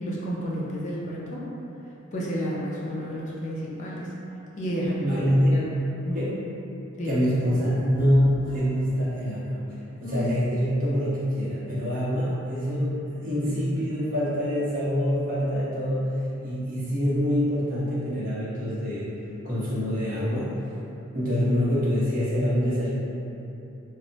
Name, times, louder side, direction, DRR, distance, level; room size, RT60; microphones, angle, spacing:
voice 1, 0.0-1.5 2.1-4.1 4.6-5.0 5.5-5.6 6.0-6.2 7.0-7.2 10.0-10.3, equal, 35° left, -5 dB, 0.4 m, -31 dB
voice 2, 5.0-5.6 6.1-6.3 7.0-9.6 10.0-19.0 19.4-20.6 21.1-22.9, equal, 40° right, -9 dB, 0.7 m, -25 dB
sound 1, 8.0-9.1, equal, 25° right, 1.0 m, -42 dB
2.2 x 2.0 x 3.8 m, 2.9 s
head